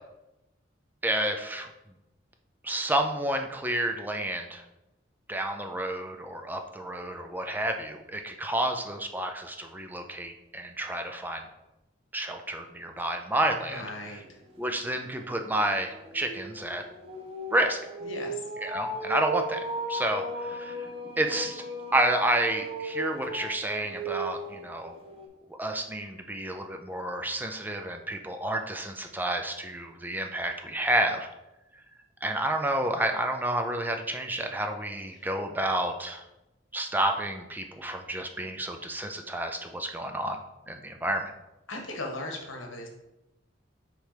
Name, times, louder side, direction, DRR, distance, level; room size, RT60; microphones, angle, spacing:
voice 1, 1.0-1.7 2.6-4.6 5.3-11.4 12.1-14.2 14.6-16.8 17.5-17.8 18.6-20.8 21.2-21.6 21.9-25.0 25.6-31.3 32.2-36.2 36.7-40.4 40.7-41.3, right 1 dB, 10° right, 5 dB, 0.4 m, -30 dB
voice 2, 13.7-14.4 18.0-18.4 35.1-35.3 41.7-42.9, left 2 dB, 80° left, 2 dB, 1.3 m, -38 dB
sound 1, 14.0-14.1 14.5-25.3, right 1 dB, 30° right, 0.9 m, -37 dB
6.3 x 3.3 x 5.0 m, 0.94 s
head